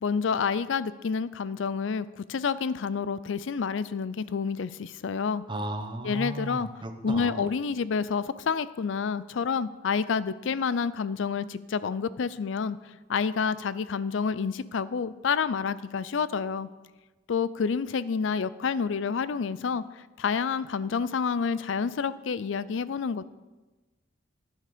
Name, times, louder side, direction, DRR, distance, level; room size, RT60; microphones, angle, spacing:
voice 1, 0.0-5.4 6.0-6.7 7.0-12.8 13.1-16.7 17.3-23.3, left 5 dB, 70° left, 16 dB, 0.4 m, -29 dB
voice 2, 5.5-7.5, right 1 dB, 25° right, 6 dB, 0.9 m, -35 dB
11.5 x 9.4 x 5.1 m, 1.2 s
head